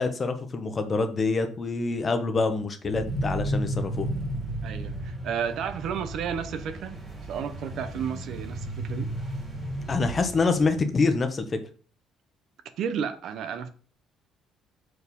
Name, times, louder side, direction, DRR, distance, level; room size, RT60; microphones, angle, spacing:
voice 1, 0.0-4.1 9.9-11.4, left 3 dB, 25° left, 1.0 m, -26 dB
sound 1, 2.9-10.8, right 1 dB, 20° right, 2.4 m, -33 dB
voice 2, 4.6-7.0 7.3-9.1 12.8-13.7, right 7 dB, 60° right, 0.9 m, -32 dB
6.4 x 4.9 x 5.4 m
cardioid pair, 155°, 0 cm